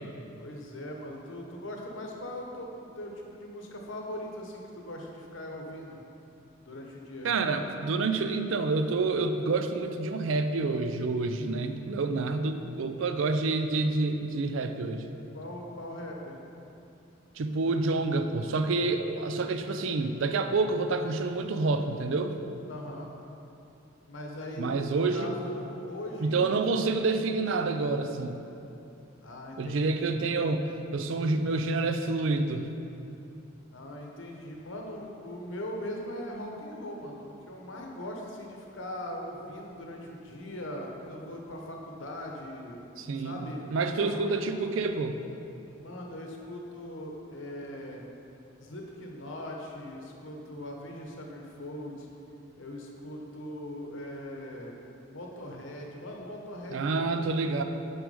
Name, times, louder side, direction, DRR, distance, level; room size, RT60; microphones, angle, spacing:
voice 1, 0.4-6.0 6.6-7.3 15.3-16.4 22.7-23.1 24.1-26.4 29.2-30.1 33.7-42.9 43.2-44.3 45.7-48.0 48.6-52.1 52.6-54.8 55.1-57.3, left 1 dB, 70° left, 0 dB, 0.9 m, -40 dB
voice 2, 7.2-15.1 17.4-22.3 24.6-25.3 26.2-28.4 29.6-32.7 43.0-45.2 56.7-57.6, right 3 dB, 70° right, 8 dB, 0.4 m, -28 dB
6.2 x 4.8 x 5.3 m, 2.8 s
head